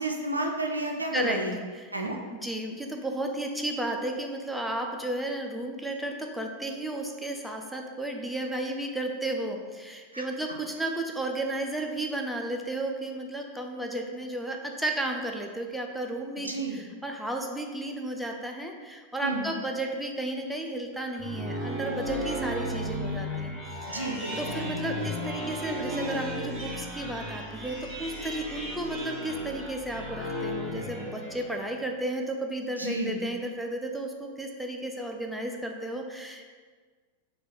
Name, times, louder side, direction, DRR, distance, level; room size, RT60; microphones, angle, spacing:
voice 1, 0.0-1.6 1.9-2.2 10.1-10.3 16.4-16.8 19.2-19.5 23.9-25.0 32.8-33.2, right 2 dB, 80° right, 2 dB, 0.4 m, -31 dB
voice 2, 1.1-1.9 2.4-23.5 23.8-24.0 24.4-36.5, right 1 dB, ahead, 1 dB, 0.4 m, -33 dB
sound 1, 20.9-31.8, equal, 15° right, 1.4 m, -35 dB
4.3 x 2.4 x 3.6 m, 1.5 s
figure-of-eight pair, 90°, 0 cm